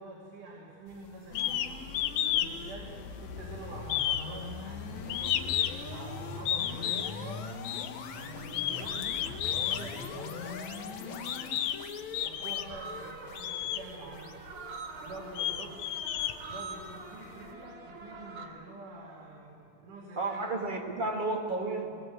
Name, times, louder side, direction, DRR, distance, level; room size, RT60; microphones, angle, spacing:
voice 1, 0.0-1.9 2.3-7.4 8.1-11.6 12.0-14.3 15.0-15.9 16.4-20.5, right 2 dB, 90° right, -3 dB, 4.0 m, -46 dB
sound 1, 1.3-16.5, left 5 dB, 70° left, 2.4 m, -42 dB
sound 2, 1.4-1.7 1.9-2.5 2.8-3.5 3.9-5.9 6.5-7.2 7.6-7.9 8.5-9.8 10.6-10.7 11.3-11.8 12.1-12.8 13.4-13.8 14.5-14.6 15.1-16.9, left 11 dB, 90° left, 2.3 m, -31 dB
sound 3, 12.2-18.5, right 4 dB, 60° right, 2.9 m, -45 dB
voice 2, 20.2-21.9, right 2 dB, 30° right, 3 dB, 0.8 m, -32 dB
21.0 x 20.0 x 8.0 m, 2.6 s
omnidirectional pair, 3.6 m